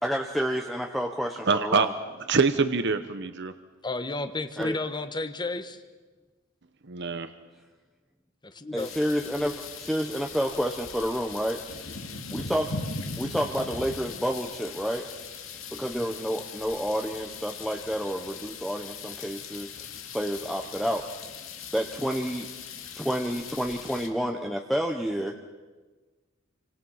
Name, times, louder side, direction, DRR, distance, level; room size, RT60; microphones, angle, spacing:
voice 1, 0.0-1.9 4.6-4.8 8.7-11.6 12.3-12.6 13.2-15.1 15.8-19.7 20.1-21.0 21.7-22.5 23.0-25.3, equal, ahead, 2 dB, 1.2 m, -29 dB
voice 2, 1.5-1.9 2.3-3.5 6.9-7.3, right 4 dB, 60° right, 10 dB, 1.0 m, -24 dB
voice 3, 3.8-5.8 8.4-8.9, left 2 dB, 20° left, 9 dB, 1.4 m, -32 dB
sound 1, 8.8-24.1, left 5 dB, 70° left, 2.6 m, -40 dB
29.0 x 25.5 x 5.7 m, 1.3 s
head